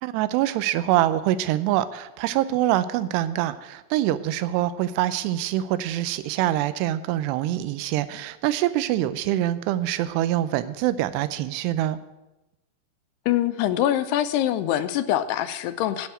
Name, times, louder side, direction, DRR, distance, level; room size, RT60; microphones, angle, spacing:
voice 1, 0.0-12.0, right 13 dB, 85° right, 13 dB, 2.8 m, -25 dB
voice 2, 13.3-16.1, left 12 dB, 85° left, 11 dB, 2.7 m, -24 dB
15.5 x 5.7 x 8.7 m, 0.98 s
omnidirectional pair, 4.8 m